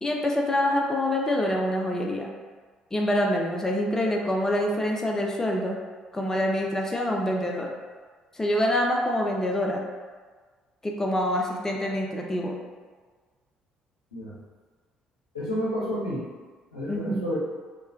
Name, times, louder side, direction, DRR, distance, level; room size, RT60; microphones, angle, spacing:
voice 1, 0.0-2.3 2.9-5.8 6.1-7.7 8.3-9.8 10.8-12.6 16.9-17.3, left 1 dB, 15° left, 0 dB, 0.4 m, -26 dB
voice 2, 15.3-16.3 16.7-17.4, equal, 85° left, -8 dB, 0.6 m, -30 dB
3.0 x 2.1 x 2.2 m, 1.5 s
figure-of-eight pair, 50°, 4 cm